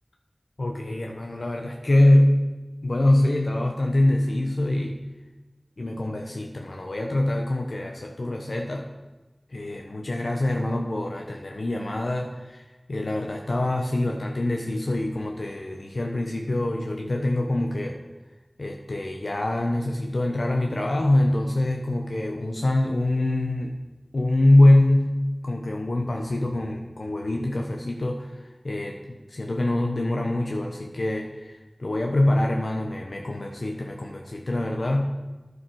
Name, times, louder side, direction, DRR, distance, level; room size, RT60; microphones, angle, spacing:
voice 1, 0.6-2.3 2.8-5.0 5.8-8.9 9.5-12.6 12.9-18.0 18.6-23.8 24.1-35.1, left 1 dB, 80° left, 1 dB, 1.0 m, -24 dB
11.0 x 8.1 x 6.2 m, 1.2 s
wide cardioid pair, 50°, 0 cm